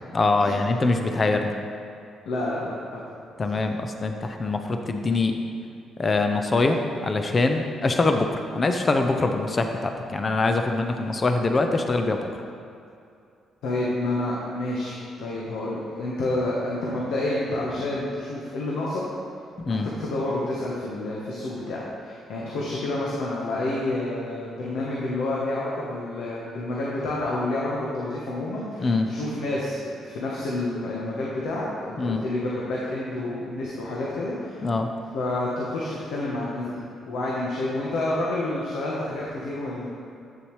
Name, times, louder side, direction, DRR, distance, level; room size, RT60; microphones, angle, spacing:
voice 1, 0.1-1.5 3.4-5.3 6.0-12.3 19.6-19.9 28.8-29.1 32.0-32.2 34.6-34.9, left 3 dB, 35° left, 5 dB, 0.6 m, -23 dB
voice 2, 2.3-3.0 13.6-19.0 19.7-34.7 35.1-36.7 37.1-39.9, left 2 dB, 80° left, -5 dB, 1.1 m, -29 dB
8.5 x 7.0 x 3.2 m, 2.5 s
cardioid pair, 90°, 0 cm